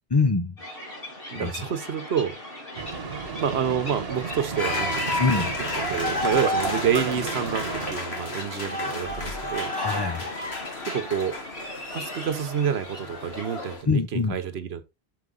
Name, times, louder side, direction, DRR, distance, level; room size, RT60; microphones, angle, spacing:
voice 1, 0.1-0.6 1.3-1.5 5.2-5.5 9.7-10.3 13.9-14.4, left 4 dB, 30° left, 0.5 m, -24 dB
sound 1, 0.6-13.8, left 1 dB, 60° left, 2.9 m, -40 dB
voice 2, 1.3-2.4 3.4-5.4 5.9-9.7 10.9-11.4 11.9-14.8, right 8 dB, 90° right, 1.2 m, -28 dB
Boat Water vehicle, 2.8-7.9, right 5 dB, 70° right, 1.3 m, -33 dB
sound 2, 4.6-13.8, left 2 dB, 80° left, 2.1 m, -31 dB
6.7 x 4.9 x 3.8 m
omnidirectional pair, 1.1 m